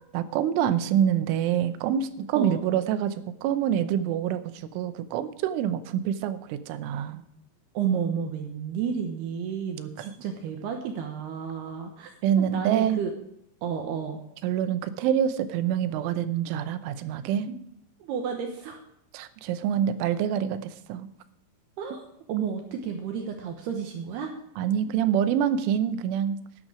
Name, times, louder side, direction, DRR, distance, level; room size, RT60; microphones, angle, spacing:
voice 1, 0.1-3.2 3.4-7.2 10.0-10.1 12.2-13.0 14.4-17.5 19.1-21.1 24.6-26.4, right 9 dB, 85° right, 11 dB, 3.3 m, -26 dB
voice 2, 7.7-12.1 12.4-13.1 13.6-14.2 17.5-17.6 18.0-18.8 21.8-22.0 22.3-24.3, right 7 dB, 70° right, 4 dB, 2.8 m, -31 dB
13.5 x 10.5 x 4.9 m, 0.80 s
omnidirectional pair, 5.4 m